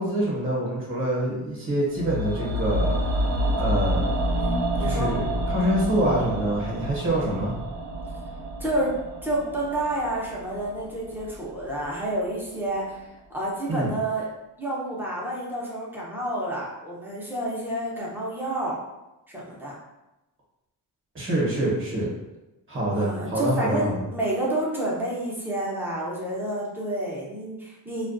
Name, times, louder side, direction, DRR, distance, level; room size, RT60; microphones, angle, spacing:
voice 1, 0.0-3.0 3.6-4.1 4.8-7.5 13.7-13.9 21.1-22.1 22.7-24.0, right 1 dB, 30° right, -4 dB, 0.9 m, -25 dB
sound 1, 1.9-12.1 12.3-12.4, equal, 65° right, 0.5 m, -28 dB
voice 2, 4.4-5.1 8.6-8.9 9.2-13.0 13.3-14.3 14.6-18.8 19.3-19.8 22.9-28.1, right 1 dB, 5° right, -6 dB, 0.6 m, -29 dB
2.3 x 2.2 x 2.5 m, 0.99 s
cardioid pair, 110°, 44 cm